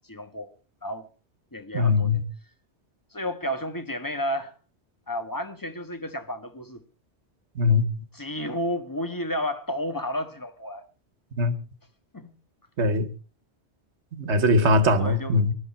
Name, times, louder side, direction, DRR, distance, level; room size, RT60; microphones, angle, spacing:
voice 1, 0.1-0.5 0.8-1.1 1.5-2.2 3.1-4.5 5.1-6.8 8.1-10.8 12.1-12.3 15.0-15.4, equal, 20° left, 1.3 m, -31 dB
voice 2, 1.7-2.2 7.6-7.8 11.4-11.5 12.8-13.1 14.1-15.5, left 2 dB, 85° right, 1.5 m, -21 dB
21.0 x 12.0 x 4.1 m
omnidirectional pair, 1.1 m